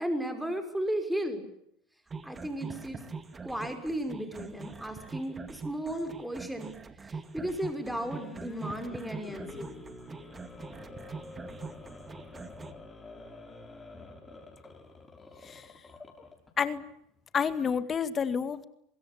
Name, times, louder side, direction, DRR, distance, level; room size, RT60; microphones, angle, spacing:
voice 1, 0.0-1.4 2.2-3.0 3.4-6.8 7.3-9.8, right 1 dB, 5° right, 7 dB, 5.5 m, -34 dB
sound 1, 2.1-12.7, right 4 dB, 25° right, 2.3 m, -43 dB
sound 2, 7.7-16.5, left 3 dB, 15° left, 6.6 m, -47 dB
voice 2, 17.3-18.6, left 6 dB, 30° left, 12 dB, 2.1 m, -29 dB
25.0 x 21.5 x 8.8 m, 0.75 s
supercardioid pair, 100°, 0 cm